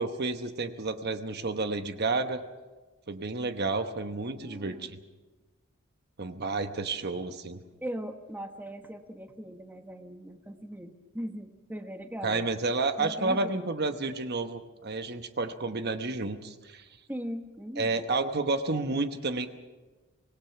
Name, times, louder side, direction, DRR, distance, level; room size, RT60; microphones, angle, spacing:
voice 1, 0.0-2.4 3.1-5.0 6.2-7.6 12.2-16.8 17.8-19.5, right 3 dB, 50° right, 8 dB, 1.1 m, -30 dB
voice 2, 4.3-5.0 7.8-12.5 13.0-13.7 17.1-18.0, equal, 10° right, 6 dB, 1.2 m, -39 dB
25.0 x 19.5 x 5.9 m, 1.2 s
head